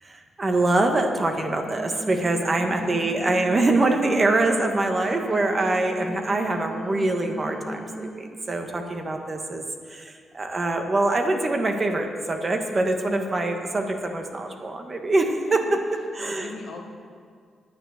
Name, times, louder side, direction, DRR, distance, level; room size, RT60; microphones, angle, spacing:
voice 1, 0.0-9.6 9.9-15.8 16.1-16.5, right 2 dB, 35° right, 4 dB, 1.5 m, -24 dB
sound 1, 1.6-8.1, right 1 dB, 20° left, 2.5 m, -37 dB
voice 2, 2.7-3.0 15.5-15.6 15.9-16.8, left 4 dB, 70° left, 1 dB, 1.6 m, -40 dB
9.1 x 9.1 x 6.5 m, 2.1 s
supercardioid pair, 60°, 0 cm